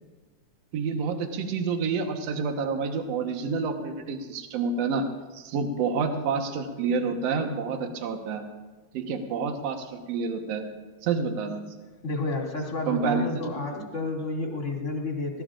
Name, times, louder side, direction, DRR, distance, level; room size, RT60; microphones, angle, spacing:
voice 1, 0.7-5.1 5.3-8.4 8.9-10.7 11.0-11.6 12.9-13.9, right 5 dB, 65° right, 4 dB, 2.2 m, -28 dB
voice 2, 12.0-15.4, left 2 dB, 25° left, 0 dB, 2.2 m, -30 dB
21.5 x 17.5 x 2.5 m, 1.3 s
omnidirectional pair, 3.4 m